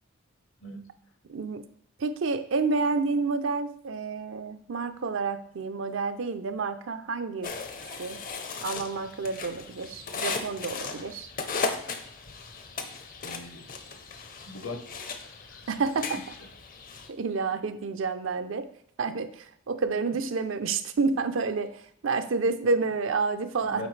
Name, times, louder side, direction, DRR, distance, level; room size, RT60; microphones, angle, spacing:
voice 1, 1.3-1.6 2.0-7.5 8.0-8.2 8.6-11.3 15.7-16.2 17.1-18.7 19.0-21.8 22.0-23.9, right 4 dB, 65° right, 9 dB, 0.5 m, -29 dB
winter snow removal, 7.4-17.1, left 4 dB, 40° left, 0.6 m, -37 dB
voice 2, 13.2-13.8 14.5-14.8 15.2-15.6 16.4-16.5 23.6-23.9, left 2 dB, 65° left, 6 dB, 0.9 m, -40 dB
8.1 x 4.5 x 3.2 m, 0.65 s
head